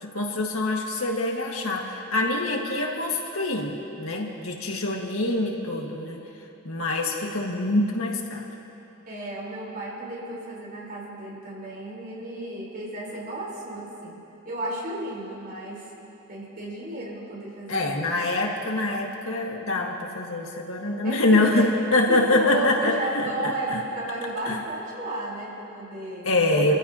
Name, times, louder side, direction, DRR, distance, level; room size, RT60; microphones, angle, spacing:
voice 1, 0.0-6.2 6.6-8.5 17.7-23.3 23.7-23.8 24.5-24.6 26.2-26.7, left 2 dB, 85° left, 0 dB, 1.8 m, -25 dB
voice 2, 9.1-15.9 16.3-18.1 21.0-26.7, right 1 dB, 45° right, -5 dB, 4.2 m, -34 dB
27.0 x 15.0 x 2.9 m, 2.8 s
head